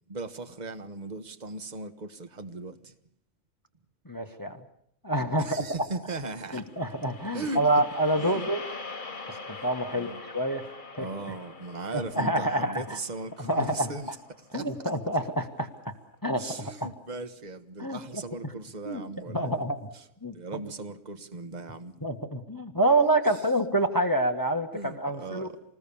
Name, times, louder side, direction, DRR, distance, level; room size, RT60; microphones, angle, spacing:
voice 1, 0.1-2.9 5.4-6.7 7.3-7.6 8.2-8.5 9.9-10.2 10.9-14.2 14.5-14.9 16.3-19.6 19.9-20.1 20.3-22.0 23.3-23.4 24.7-25.6, right 3 dB, 30° right, 1.5 m, -38 dB
voice 2, 4.0-4.6 5.0-5.5 6.5-8.6 9.3-10.7 11.0-11.1 11.9-13.0 13.4-13.9 14.5-15.9 16.2-16.9 17.8-18.0 18.8-19.0 19.3-19.9 20.2-20.3 22.0-25.5, right 1 dB, 15° left, 1.6 m, -27 dB
sound 1, 6.6-14.9, left 3 dB, 35° left, 1.6 m, -43 dB
27.0 x 20.0 x 7.1 m
omnidirectional pair, 1.4 m